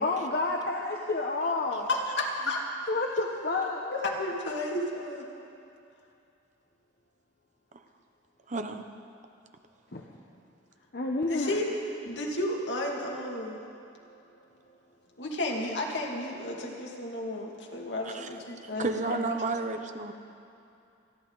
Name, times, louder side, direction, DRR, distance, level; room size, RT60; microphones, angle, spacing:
voice 1, 0.0-1.9 2.9-3.8 9.9-10.0 10.9-11.6 13.7-13.8, left 3 dB, 55° left, 0 dB, 1.0 m, -29 dB
voice 2, 1.9-2.6 3.9-5.3 11.3-11.7 12.0-13.6 15.2-19.4, left 1 dB, 75° left, -1 dB, 2.2 m, -32 dB
voice 3, 8.5-8.8 18.1-18.3 18.8-20.1, right 3 dB, 40° right, 7 dB, 0.8 m, -31 dB
28.5 x 11.5 x 4.0 m, 2.7 s
head